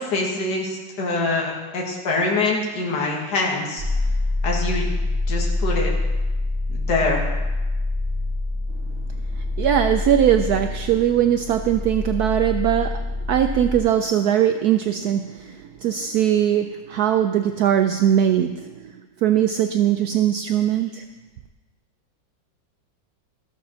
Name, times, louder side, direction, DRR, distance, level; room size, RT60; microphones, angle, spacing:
voice 1, 0.0-3.8 4.4-4.9 5.3-5.9 6.7-7.2, left 3 dB, 65° left, -2 dB, 2.3 m, -24 dB
sound 1, 3.8-13.8, left 2 dB, 15° right, 3.2 m, -25 dB
voice 2, 9.4-18.9 19.2-21.0, right 10 dB, 70° right, 8 dB, 0.9 m, -20 dB
14.5 x 7.0 x 6.3 m, 1.2 s
omnidirectional pair, 2.0 m